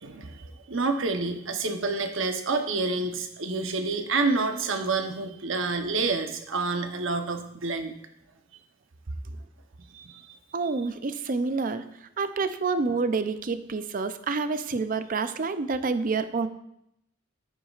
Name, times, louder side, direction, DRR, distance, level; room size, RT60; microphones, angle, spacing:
voice 1, 0.0-7.9 9.9-10.3, right 3 dB, 80° right, 6 dB, 0.9 m, -28 dB
voice 2, 10.5-11.8 12.2-16.5, right 4 dB, 45° right, 11 dB, 0.5 m, -28 dB
10.0 x 9.3 x 2.4 m, 0.80 s
head